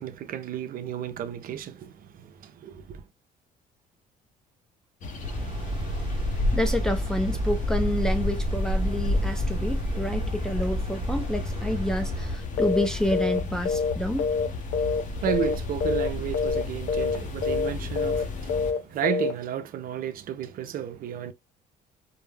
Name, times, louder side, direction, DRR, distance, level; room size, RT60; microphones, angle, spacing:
voice 1, 0.0-3.0 14.9-21.3, right 10 dB, 60° right, 0.5 m, -33 dB
sound 1, 5.0-18.7, left 2 dB, 50° left, 0.6 m, -32 dB
sound 2, 5.2-12.4, right 1 dB, 30° right, 0.9 m, -31 dB
voice 2, 6.5-14.3, left 1 dB, 5° left, 0.5 m, -29 dB
sound 3, 12.6-12.9 13.1-13.4 13.6-15.0 15.3-15.5 15.8-16.1 16.3-16.6 16.9-17.2 17.4-17.7 18.0-18.2 18.5-18.8 19.0-19.3, left 5 dB, 80° left, 0.7 m, -26 dB
2.2 x 2.0 x 3.2 m
cardioid pair, 110°, 17 cm